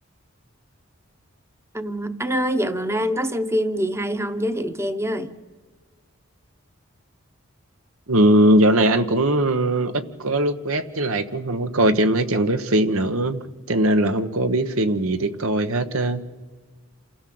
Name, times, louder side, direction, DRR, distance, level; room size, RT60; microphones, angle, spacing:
voice 1, 1.7-5.3, equal, 15° right, 10 dB, 0.9 m, -25 dB
voice 2, 8.1-13.4 13.7-16.2, right 1 dB, 80° right, 9 dB, 1.2 m, -20 dB
27.5 x 16.0 x 7.8 m, 1.5 s
head